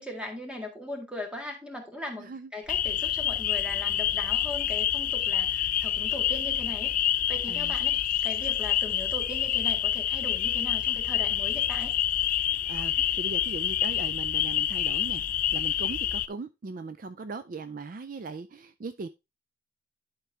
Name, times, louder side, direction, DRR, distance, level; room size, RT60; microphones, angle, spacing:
voice 1, 0.0-6.9 7.3-11.9, left 1 dB, 5° right, 2 dB, 1.8 m, -39 dB
voice 2, 2.2-2.5 7.5-7.8 12.5-15.2 15.5-19.1, right 4 dB, 45° right, 12 dB, 0.4 m, -39 dB
sound 1, 2.7-16.3, left 11 dB, 45° left, 0.3 m, -27 dB
11.0 x 4.6 x 3.4 m, 0.24 s
head